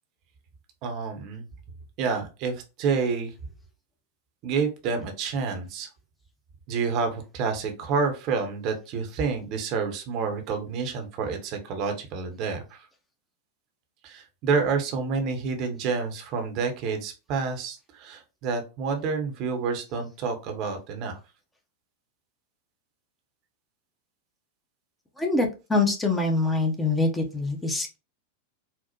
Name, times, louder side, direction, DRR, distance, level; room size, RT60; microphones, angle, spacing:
voice 1, 0.8-1.4 2.0-3.3 4.4-5.9 6.7-12.8 14.0-21.2, right 5 dB, 40° right, 5 dB, 0.7 m, -29 dB
voice 2, 25.2-28.0, left 3 dB, 10° left, 3 dB, 0.6 m, -24 dB
4.3 x 2.0 x 2.7 m, 0.29 s
figure-of-eight pair, 90°, 0 cm